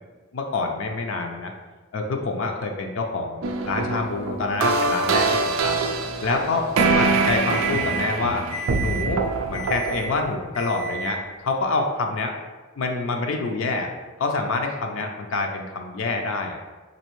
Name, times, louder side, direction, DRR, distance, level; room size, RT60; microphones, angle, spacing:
voice 1, 0.3-1.5 1.9-5.8 6.2-8.5 8.8-12.3 12.8-13.9 14.2-16.6, left 3 dB, 60° left, 2 dB, 0.4 m, -27 dB
sound 1, 3.4-10.3, right 4 dB, 70° right, 0.3 m, -24 dB
Microwave oven, 5.6-8.2 8.5-9.1 9.5-10.1 10.5-11.2, right 4 dB, 15° right, 0.7 m, -34 dB
4.1 x 2.6 x 3.0 m, 1.3 s
head